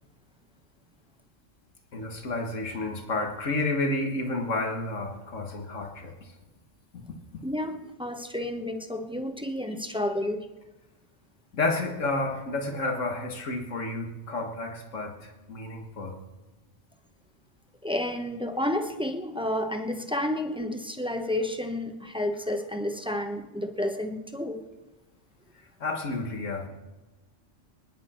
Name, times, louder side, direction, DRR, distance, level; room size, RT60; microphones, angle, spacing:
voice 1, 1.9-6.3 6.9-7.0 11.5-16.2 25.8-26.7, left 2 dB, 90° left, 3 dB, 1.9 m, -31 dB
voice 2, 7.4-10.5 17.8-24.6, left 1 dB, 5° right, 6 dB, 0.9 m, -31 dB
25.0 x 10.0 x 4.4 m, 1.1 s
omnidirectional pair, 1.3 m